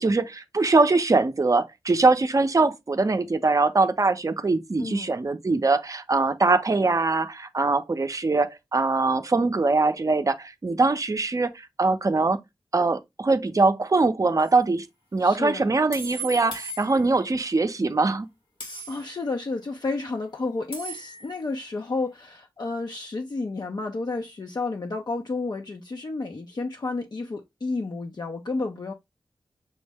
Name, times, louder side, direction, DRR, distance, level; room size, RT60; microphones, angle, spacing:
voice 1, 0.0-12.4 12.7-14.9 15.1-18.3, right 3 dB, 40° right, 0.5 m, -22 dB
voice 2, 4.8-5.1 15.2-15.7 18.6-28.9, left 3 dB, 50° left, 0.5 m, -31 dB
sound 1, 14.4-14.6 15.9-17.3 18.6-19.2 20.7-21.4, right 1 dB, 90° left, 2.5 m, -38 dB
6.2 x 2.1 x 3.3 m
wide cardioid pair, 60°, 9 cm